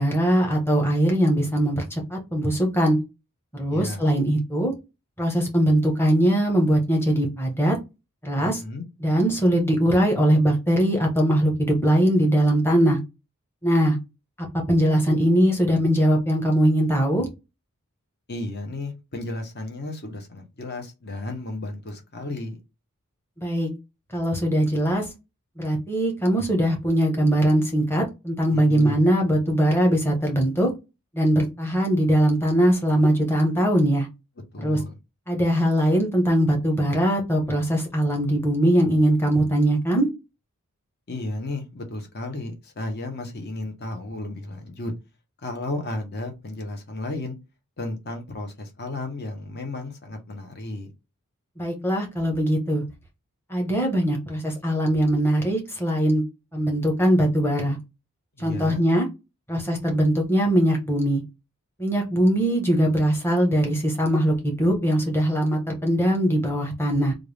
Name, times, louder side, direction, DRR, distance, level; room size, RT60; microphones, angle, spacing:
voice 1, 0.0-3.0 3.5-4.7 5.2-7.8 8.2-8.6 9.0-13.0 13.6-14.0 14.4-17.3 23.4-23.7 24.1-25.1 25.6-30.7 31.1-34.1 34.6-34.8 35.3-40.1 51.6-52.8 53.5-56.2 56.5-57.8 58.4-59.1 59.5-61.2 61.8-67.1, right 1 dB, 10° left, 1.0 m, -21 dB
voice 2, 3.7-4.1 8.4-8.8 18.3-22.6 28.5-29.0 34.5-35.0 41.1-44.9 45.4-47.4 47.8-50.9 58.4-58.8, left 2 dB, 50° left, 1.1 m, -33 dB
3.4 x 2.5 x 3.4 m
head